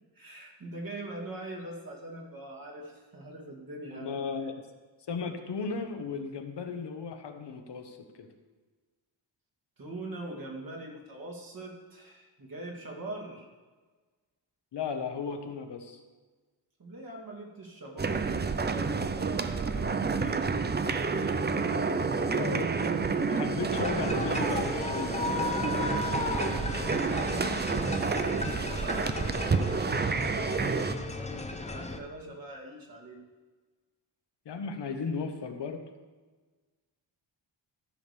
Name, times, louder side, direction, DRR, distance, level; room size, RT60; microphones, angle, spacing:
voice 1, 0.1-4.2 4.4-4.5 9.8-13.5 16.8-20.4 21.3-22.5 26.6-27.8 28.5-33.2, right 2 dB, 50° right, -1 dB, 2.4 m, -42 dB
voice 2, 3.9-4.5 5.1-8.3 14.7-16.0 22.2-23.0 23.3-25.8 34.4-35.8, left 5 dB, 60° left, 5 dB, 1.2 m, -36 dB
sound 1, 18.0-30.9, right 4 dB, 25° right, 0.5 m, -29 dB
sound 2, 23.7-32.0, left 3 dB, 15° left, 0.7 m, -35 dB
14.5 x 5.2 x 6.8 m, 1.4 s
wide cardioid pair, 145°, 46 cm